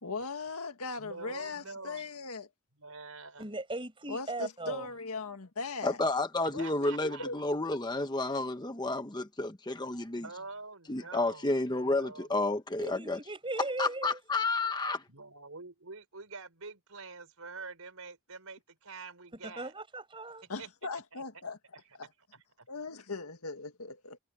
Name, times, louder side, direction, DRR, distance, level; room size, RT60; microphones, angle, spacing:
voice 1, 0.0-2.5 4.1-6.0 6.5-7.4 20.5-21.6 22.7-24.2, left 3 dB, 90° left, 1.9 m, -39 dB
voice 2, 1.0-2.0 2.8-3.5 4.7-4.8 6.6-7.3 10.2-11.5 12.0-12.3 15.1-19.7 20.6-20.7 21.1-21.2 22.6-22.8, right 4 dB, 80° right, 4.7 m, -46 dB
voice 3, 3.4-4.9 12.8-14.2 19.4-20.4, right 2 dB, 25° right, 6.4 m, -38 dB
voice 4, 5.8-10.2 10.9-13.2 13.8-15.0, left 2 dB, 20° left, 0.9 m, -31 dB
head